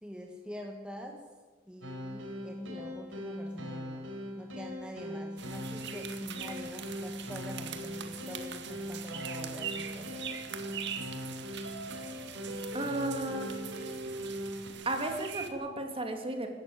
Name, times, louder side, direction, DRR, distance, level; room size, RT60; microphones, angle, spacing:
voice 1, 0.0-1.2 1.6-10.6, equal, 5° right, 1 dB, 2.0 m, -45 dB
sound 1, 1.8-14.7, equal, 85° right, 5.1 m, -40 dB
sound 2, 5.4-15.5, right 8 dB, 65° right, 2.1 m, -43 dB
voice 2, 12.7-13.6 14.8-16.5, right 1 dB, 30° right, 4 dB, 2.9 m, -34 dB
25.5 x 12.5 x 8.8 m, 1.3 s
head